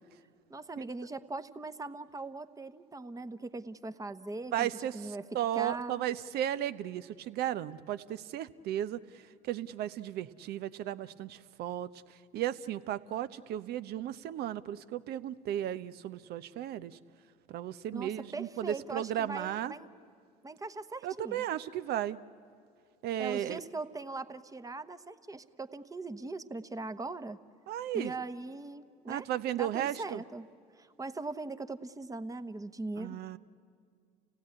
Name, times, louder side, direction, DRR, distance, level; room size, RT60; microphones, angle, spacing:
voice 1, 0.5-5.2 5.5-6.0 17.9-19.9 20.4-21.4 23.2-27.4 27.9-30.5 30.8-33.2, right 3 dB, 20° right, 11 dB, 1.1 m, -40 dB
voice 2, 4.5-9.0 9.5-11.9 12.3-17.0 17.5-19.7 21.0-22.2 23.0-23.6 27.7-28.1 29.1-30.2 33.0-33.4, right 11 dB, 65° right, 14 dB, 0.8 m, -35 dB
29.0 x 17.0 x 9.7 m, 2.2 s
hypercardioid pair, 70°, 18 cm